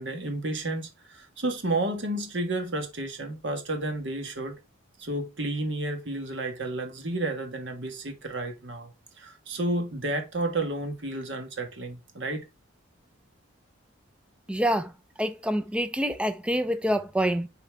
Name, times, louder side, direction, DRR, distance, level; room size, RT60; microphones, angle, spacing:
voice 1, 0.0-4.6 5.0-8.9 9.2-12.4, right 2 dB, 60° right, 1.5 m, -31 dB
voice 2, 14.5-14.9 15.2-17.5, equal, 5° right, 0.4 m, -26 dB
7.3 x 4.2 x 3.4 m
head